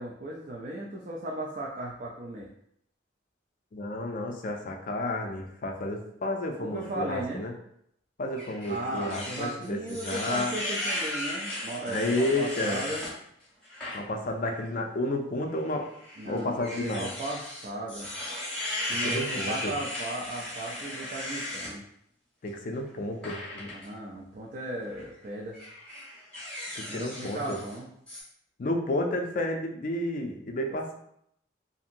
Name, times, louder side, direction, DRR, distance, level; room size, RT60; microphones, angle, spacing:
voice 1, 0.0-2.5 6.6-7.5 8.6-13.0 16.2-18.1 18.9-21.8 23.6-25.6 26.9-27.9 30.7-30.9, right 1 dB, 45° right, -3 dB, 0.4 m, -36 dB
voice 2, 3.7-7.5 8.2-10.6 11.9-12.8 13.9-15.9 16.3-17.1 19.0-19.7 22.4-23.7 26.8-27.6 28.6-30.9, left 1 dB, 45° left, 4 dB, 0.4 m, -31 dB
sound 1, 8.4-13.1 13.6-14.0 14.4-14.6 15.6-21.7 23.2-23.9 24.8-25.1 25.5-27.8 28.1-28.2, left 1 dB, 5° left, 1.0 m, -36 dB
2.8 x 2.6 x 2.5 m, 0.72 s
head